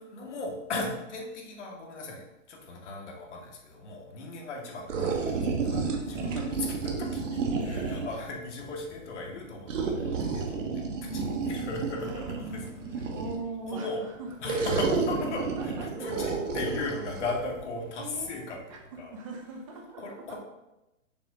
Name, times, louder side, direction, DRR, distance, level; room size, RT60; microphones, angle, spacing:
voice 1, 0.0-10.6 11.1-12.7 12.9-13.1 13.7-14.0 14.4-19.1 20.0-20.4, left 2 dB, 60° left, 0 dB, 1.9 m, -37 dB
sound 1, 4.9-8.3 9.7-13.5 14.5-17.4, right 4 dB, 65° right, 1.3 m, -31 dB
sound 2, 6.0-10.6 11.0-18.6, left 5 dB, 20° left, 1.7 m, -52 dB
voice 2, 12.0-12.3 13.0-13.9 14.2-14.5 15.4-16.6 18.0-18.6 18.9-20.3, right 3 dB, 25° right, 2 dB, 0.7 m, -40 dB
7.0 x 6.3 x 2.7 m, 0.95 s
hypercardioid pair, 155°, 40 cm